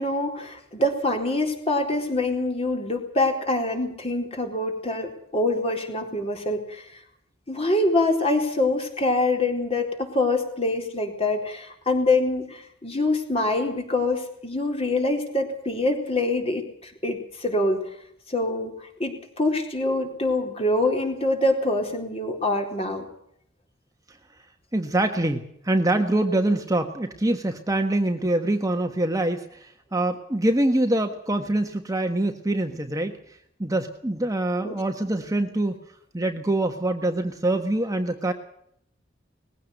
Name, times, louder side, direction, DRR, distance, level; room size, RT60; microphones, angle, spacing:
voice 1, 0.0-6.9 7.5-17.8 18.3-18.7 19.0-23.0 34.6-34.8, left 2 dB, 30° left, 3 dB, 4.1 m, -25 dB
voice 2, 24.7-33.1 33.6-35.8 36.1-38.3, right 1 dB, 20° right, 5 dB, 1.4 m, -24 dB
20.5 x 16.0 x 8.1 m, 0.71 s
head